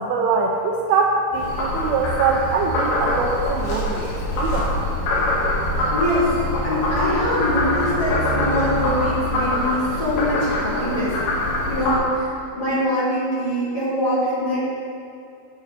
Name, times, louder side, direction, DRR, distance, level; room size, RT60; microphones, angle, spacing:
voice 1, 0.0-4.7, right 4 dB, 80° right, 0 dB, 3.0 m, -23 dB
Frog, 1.3-12.0, left 1 dB, 75° left, 4.4 m, -24 dB
voice 2, 5.9-6.4 6.6-14.6, left 1 dB, 30° left, -10 dB, 2.2 m, -23 dB
13.0 x 8.4 x 3.3 m, 2.6 s
omnidirectional pair, 5.8 m